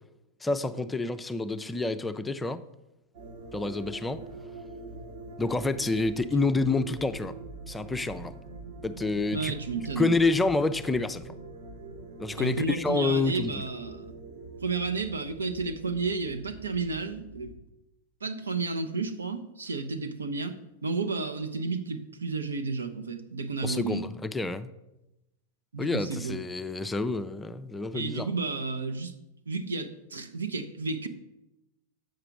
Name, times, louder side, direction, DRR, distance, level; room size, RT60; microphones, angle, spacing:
voice 1, 0.4-2.6 3.5-4.2 5.4-7.3 7.7-8.4 8.8-9.5 10.0-11.2 12.2-13.6 23.6-24.7 25.8-28.3, left 3 dB, 10° left, 0.4 m, -28 dB
sound 1, 3.1-17.6, right 3 dB, 50° right, 1.0 m, -44 dB
voice 2, 9.3-10.2 12.4-14.1 14.6-17.5 18.2-24.0 25.7-26.4 27.9-29.1 29.5-31.1, right 4 dB, 75° right, 0.7 m, -32 dB
7.8 x 6.8 x 5.8 m
figure-of-eight pair, 90°, 0 cm